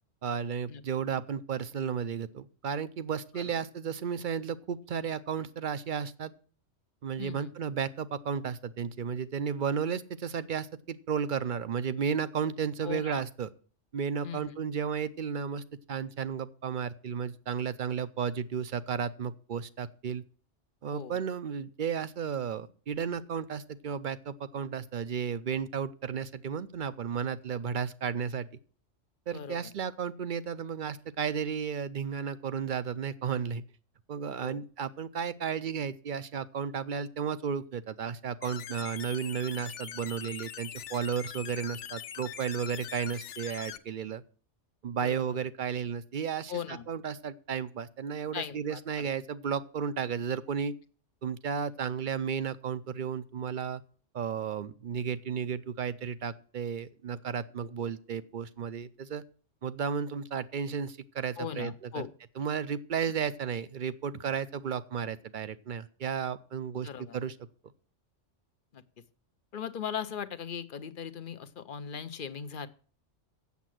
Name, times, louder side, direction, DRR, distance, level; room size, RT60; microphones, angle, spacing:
voice 1, 0.2-6.3 7.0-13.5 13.9-20.2 20.8-28.5 29.3-33.6 34.1-44.2 44.8-50.7 51.2-53.8 54.1-59.2 59.6-62.1 62.4-67.4, right 7 dB, 55° right, 15 dB, 0.6 m, -33 dB
voice 2, 7.2-7.5 12.8-13.2 14.2-14.5 20.9-21.2 29.3-29.7 34.4-34.6 45.0-45.3 46.5-46.8 48.3-49.1 61.4-62.1 66.8-67.2 68.7-68.8 69.5-72.7, left 7 dB, 50° left, 13 dB, 0.8 m, -39 dB
sound 1, 38.4-43.8, left 9 dB, 75° left, 1.0 m, -42 dB
8.3 x 7.2 x 7.6 m, 0.43 s
omnidirectional pair, 1.2 m